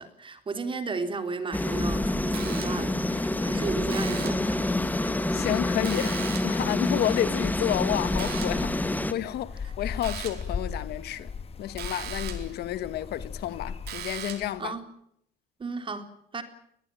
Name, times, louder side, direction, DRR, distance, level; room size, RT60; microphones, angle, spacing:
voice 1, 0.0-4.6 14.6-14.8 15.6-16.4, right 4 dB, 30° right, 3.5 m, -34 dB
sound 1, 1.5-9.1, left 2 dB, 10° left, 1.9 m, -27 dB
sound 2, 2.3-3.0 3.9-4.6 5.8-6.7 8.2-8.7 10.0-10.5 11.8-12.6 13.9-14.6, right 10 dB, 70° right, 4.4 m, -39 dB
voice 2, 5.0-11.3 11.6-14.8, left 12 dB, 70° left, 1.8 m, -31 dB
sound 3, 7.7-14.5, left 5 dB, 35° left, 2.2 m, -38 dB
21.5 x 21.0 x 9.1 m
cardioid pair, 110°, 17 cm